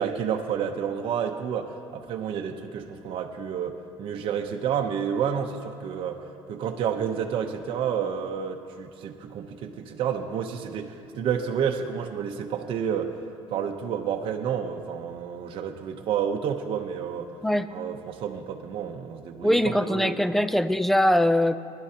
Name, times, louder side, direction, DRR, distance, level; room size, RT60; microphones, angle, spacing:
voice 1, 0.0-6.2 6.5-13.1 13.5-17.3 17.7-20.2, right 8 dB, 55° right, 3 dB, 0.8 m, -30 dB
voice 2, 19.4-21.5, left 1 dB, ahead, 12 dB, 0.4 m, -22 dB
20.0 x 11.5 x 2.9 m, 2.6 s
cardioid pair, 120°, 11 cm